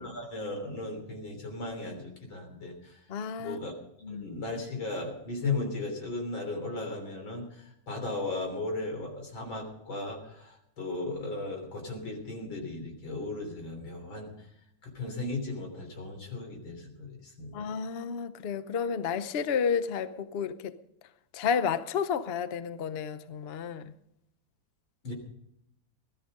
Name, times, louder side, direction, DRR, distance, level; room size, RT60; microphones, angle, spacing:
voice 1, 0.0-3.0 3.4-3.7 4.1-14.5 14.8-17.7 25.0-25.1, left 2 dB, 85° left, 4.1 m, -36 dB
voice 2, 3.1-3.6 4.0-4.3 17.5-20.7 21.3-23.9, left 6 dB, 55° left, 0.6 m, -31 dB
17.5 x 12.5 x 5.3 m
omnidirectional pair, 2.1 m